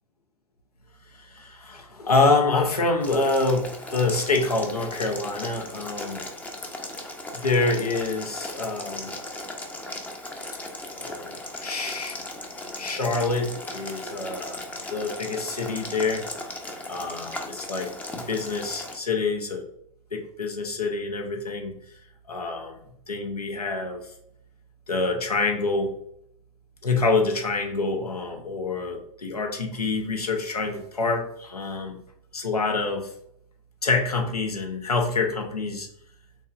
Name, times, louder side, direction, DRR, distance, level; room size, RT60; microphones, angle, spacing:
voice 1, 1.2-6.3 7.3-9.1 11.0-12.2 12.8-14.6 14.9-16.3 16.9-19.7 20.1-21.8 22.3-22.8 23.1-24.1 24.9-25.9 26.8-32.0 32.3-33.1 33.8-35.9, left 3 dB, 90° left, 3 dB, 1.0 m, -26 dB
Boiling, 3.0-19.0, left 1 dB, 10° left, 0.6 m, -37 dB
5.4 x 3.5 x 2.5 m, 0.72 s
figure-of-eight pair, 105°, 19 cm